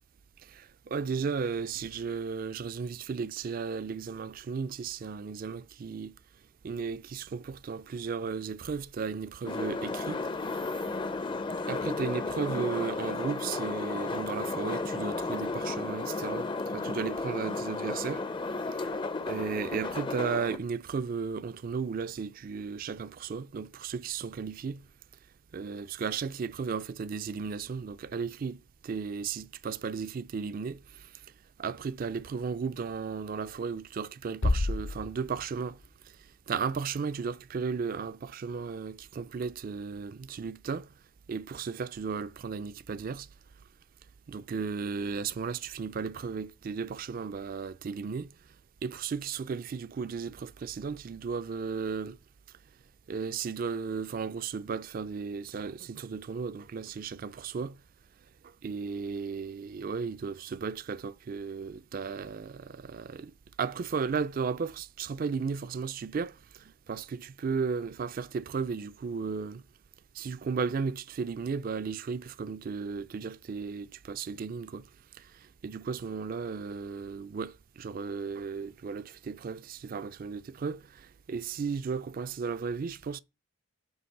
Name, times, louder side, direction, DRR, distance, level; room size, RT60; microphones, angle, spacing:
voice 1, 0.5-6.1 6.6-10.2 11.7-18.2 18.7-18.8 19.3-24.8 25.5-28.6 28.8-31.1 31.6-35.8 36.5-40.9 41.3-43.3 44.3-48.3 48.8-52.2 53.1-57.8 58.6-63.3 63.6-69.6 70.1-74.9 75.6-83.2, right 5 dB, 40° right, 0.3 m, -35 dB
sound 1, 9.4-20.6, left 3 dB, 25° left, 0.4 m, -33 dB
sound 2, 34.4-36.4, left 2 dB, 65° left, 0.7 m, -31 dB
9.5 x 3.2 x 5.7 m
head